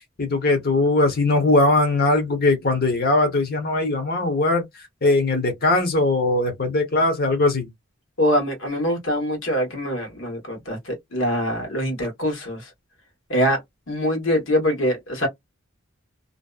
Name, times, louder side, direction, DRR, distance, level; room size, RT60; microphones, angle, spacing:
voice 1, 0.2-4.6 5.0-7.7, left 2 dB, 50° left, 0.8 m, -20 dB
voice 2, 8.2-12.7 13.3-13.6 13.9-15.3, equal, 75° left, 1.1 m, -23 dB
2.6 x 2.0 x 2.3 m
head